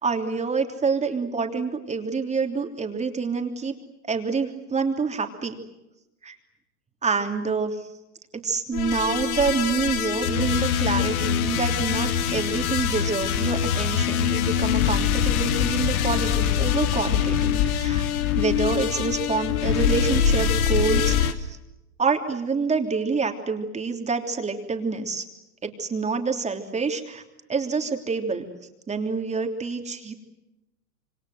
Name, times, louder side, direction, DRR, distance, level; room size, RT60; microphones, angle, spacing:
voice 1, 0.0-3.7 4.0-5.6 6.2-6.4 7.0-7.8 8.3-18.0 18.4-21.6 22.0-25.2 25.6-27.2 27.5-28.5 28.9-30.1, right 4 dB, 15° right, 5 dB, 3.3 m, -27 dB
sound 1, 8.7-21.3, left 8 dB, 70° left, 2.5 m, -23 dB
27.0 x 25.0 x 8.0 m, 0.95 s
hypercardioid pair, 120°, 44 cm